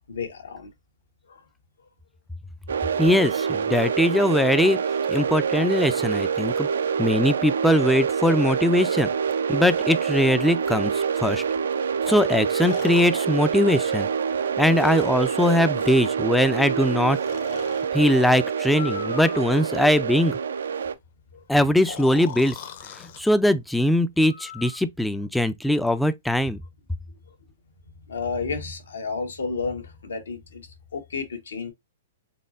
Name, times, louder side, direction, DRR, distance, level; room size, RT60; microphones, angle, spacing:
voice 1, 0.1-0.7 1.3-1.4 21.3-21.4 28.1-30.7 30.9-31.7, left 4 dB, 90° left, 1.2 m, -31 dB
sound 1, 2.7-20.9, right 6 dB, 85° right, 0.4 m, -26 dB
voice 2, 3.0-4.8 5.1-6.7 7.0-9.1 9.5-11.4 12.1-14.1 14.6-17.2 17.9-20.4 21.5-22.6 22.9-26.6, left 1 dB, 5° left, 0.3 m, -21 dB
Breathing, 10.7-10.8 12.5-14.3 14.7-16.0 17.1-17.9 18.7-19.9 21.8-23.2 24.3-24.8, left 8 dB, 60° left, 0.8 m, -40 dB
4.2 x 3.2 x 2.4 m
hypercardioid pair, 135°, 0 cm